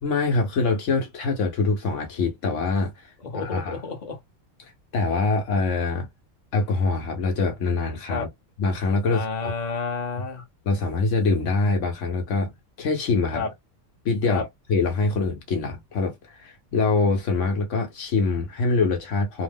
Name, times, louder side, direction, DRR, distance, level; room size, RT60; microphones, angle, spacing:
voice 1, 0.0-3.8 4.6-6.1 6.5-8.3 8.6-9.5 10.7-12.5 12.8-13.5 14.0-14.4 14.7-19.4, left 3 dB, 70° left, 1.0 m, -24 dB
voice 2, 3.2-4.2 8.1-8.3 9.1-10.4 13.3-13.5 14.3-14.4, left 4 dB, 35° left, 0.9 m, -30 dB
2.9 x 2.1 x 3.3 m
omnidirectional pair, 1.4 m